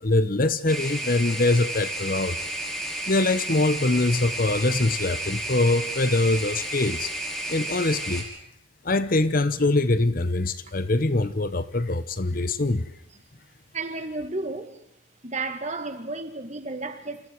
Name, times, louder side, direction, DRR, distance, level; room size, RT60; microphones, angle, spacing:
voice 1, 0.0-2.4 3.1-7.1 7.5-8.3 8.8-12.9, left 2 dB, 45° left, 1.0 m, -23 dB
sound 1, 0.7-8.2, right 1 dB, 5° left, 5.5 m, -32 dB
voice 2, 13.7-14.8 15.2-17.3, right 3 dB, 35° right, 2.1 m, -32 dB
30.0 x 28.0 x 4.8 m
head